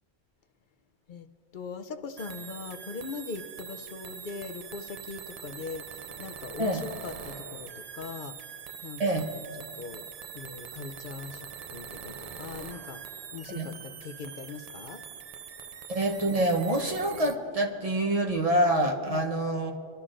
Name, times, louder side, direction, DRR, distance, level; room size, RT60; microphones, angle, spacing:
voice 1, 1.5-8.4 8.8-9.4 9.8-10.0 10.3-13.0 13.3-15.0 19.1-19.3, left 4 dB, 55° left, 8 dB, 0.7 m, -41 dB
sound 1, 2.2-17.4, right 7 dB, 55° right, 0.4 m, -43 dB
voice 2, 9.0-9.3 13.5-13.7 15.9-19.7, right 1 dB, 35° right, 1 dB, 0.9 m, -26 dB
25.5 x 11.5 x 2.5 m, 2.6 s
omnidirectional pair, 1.1 m